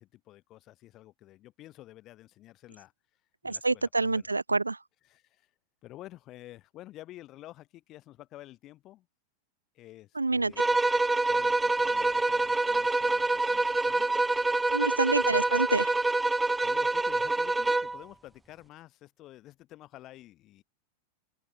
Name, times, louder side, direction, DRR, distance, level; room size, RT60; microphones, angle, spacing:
voice 1, 0.0-2.9 3.4-4.3 5.0-5.5 5.8-9.1 9.7-10.6 11.3-14.1 15.1-15.6 16.6-20.6, left 15 dB, 35° left, 6.3 m, -50 dB
voice 2, 3.4-4.8 10.2-10.5 14.7-15.9, right 3 dB, 80° right, 0.3 m, -27 dB
sound 1, 10.6-18.0, right 2 dB, 10° right, 0.4 m, -26 dB
open air
figure-of-eight pair, 90°, 0 cm